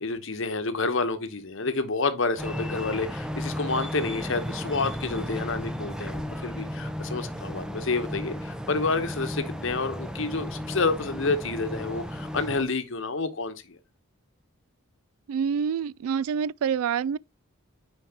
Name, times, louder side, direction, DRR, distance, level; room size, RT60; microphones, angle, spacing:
voice 1, 0.0-13.8, left 3 dB, 60° left, 1.0 m, -29 dB
sound 1, 2.4-12.6, equal, 5° right, 0.5 m, -34 dB
voice 2, 15.3-17.2, right 7 dB, 75° right, 0.3 m, -27 dB
9.6 x 4.5 x 2.9 m
head